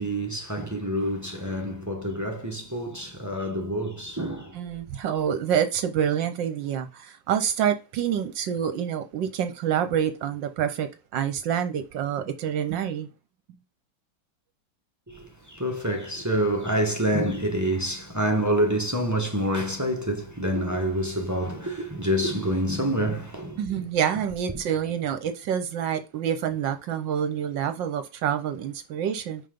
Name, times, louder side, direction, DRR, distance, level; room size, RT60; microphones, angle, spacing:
voice 1, 0.0-4.6 15.1-23.9, right 1 dB, 15° right, 0.6 m, -27 dB
voice 2, 4.5-13.1 23.6-29.4, right 9 dB, 70° right, 1.3 m, -27 dB
5.8 x 5.2 x 5.1 m
omnidirectional pair, 2.2 m